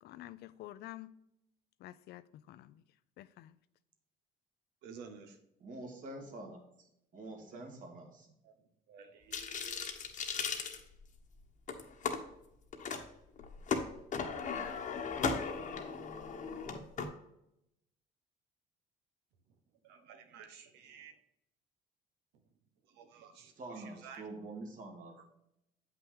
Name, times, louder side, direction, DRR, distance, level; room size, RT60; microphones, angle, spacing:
voice 1, 0.0-1.1 1.8-2.8 3.2-3.6, left 15 dB, 75° left, 0.4 m, -49 dB
voice 2, 4.8-5.4 7.5-7.6 8.4-8.5 8.9-10.0 19.8-21.1 22.9-24.5 25.0-25.2, right 6 dB, 90° right, 1.0 m, -53 dB
voice 3, 5.6-6.6 7.1-8.3 23.6-25.2, right 2 dB, 50° right, 2.0 m, -46 dB
sound 1, 9.3-11.3 11.7-12.2 12.7-13.0 13.4-17.1, left 5 dB, 50° left, 1.1 m, -37 dB
7.8 x 5.7 x 3.6 m
cardioid pair, 110°, 17 cm